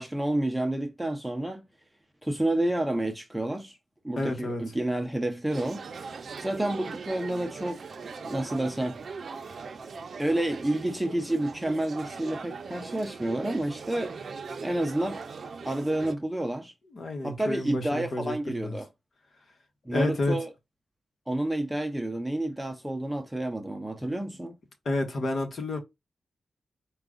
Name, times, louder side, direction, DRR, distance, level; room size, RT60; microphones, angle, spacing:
voice 1, 0.0-1.6 2.2-3.8 4.0-5.8 6.4-9.0 9.3-9.5 10.2-14.1 14.6-15.2 15.6-16.7 17.2-18.9 19.9-20.5 21.3-24.6, right 1 dB, 5° right, 0.6 m, -29 dB
voice 2, 4.2-4.6 16.9-18.8 19.9-20.4 24.0-24.2 24.8-25.8, left 2 dB, 50° left, 1.2 m, -30 dB
sound 1, 5.5-16.1, right 5 dB, 55° right, 0.6 m, -40 dB
4.7 x 2.3 x 3.6 m
wide cardioid pair, 130°, 0 cm